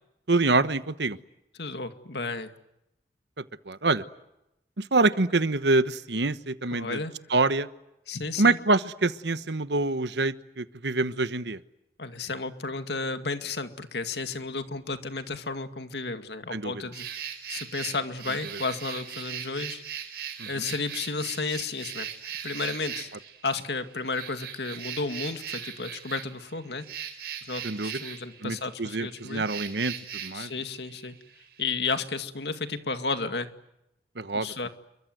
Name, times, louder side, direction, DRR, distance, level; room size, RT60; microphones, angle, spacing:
voice 1, 0.3-1.2 3.7-4.0 4.8-7.0 7.3-7.7 8.4-11.6 16.5-16.8 18.5-18.6 20.4-20.6 27.6-28.0 28.4-29.9 30.2-30.5 34.2-34.7, right 3 dB, 80° right, 13 dB, 1.2 m, -26 dB
voice 2, 1.6-2.5 6.7-7.1 8.1-8.6 12.0-17.1 17.5-19.8 20.5-23.1 23.4-26.9 27.5-29.5 30.3-31.2 31.6-33.5 34.3-34.7, left 4 dB, 75° left, 8 dB, 2.2 m, -32 dB
sound 1, 16.9-31.7, right 9 dB, 65° right, 4.9 m, -39 dB
29.0 x 24.0 x 8.0 m, 0.86 s
head